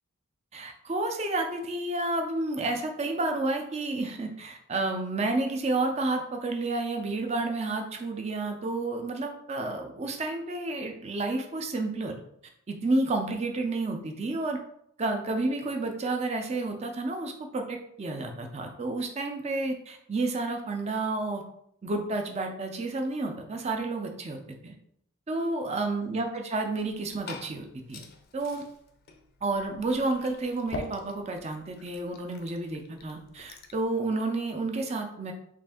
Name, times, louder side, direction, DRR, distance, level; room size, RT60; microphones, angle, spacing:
voice 1, 0.5-12.1 12.7-14.6 15.0-21.4 21.8-24.7 25.3-28.0 28.3-28.6 29.4-35.3, right 2 dB, 30° right, 4 dB, 0.4 m, -30 dB
Liquid, 26.8-33.8, left 2 dB, 45° left, 0.4 m, -45 dB
3.2 x 2.6 x 3.5 m, 0.72 s
head